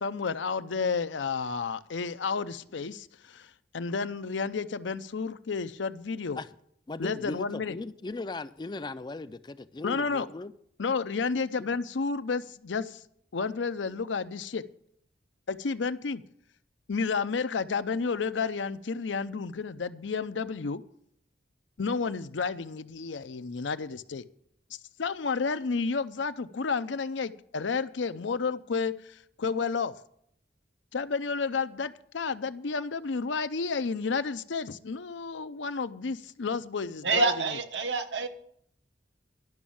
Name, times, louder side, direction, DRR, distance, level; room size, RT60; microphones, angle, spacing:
voice 1, 0.0-6.4 7.0-7.8 9.8-10.3 10.8-13.0 13.3-14.6 15.5-16.2 16.9-20.8 21.8-24.2 25.0-29.9 30.9-37.3, left 5 dB, 80° left, 0.6 m, -31 dB
voice 2, 6.9-10.5, left 2 dB, 25° left, 0.4 m, -38 dB
voice 3, 37.0-38.3, right 3 dB, 70° right, 1.1 m, -27 dB
12.0 x 6.3 x 8.5 m
head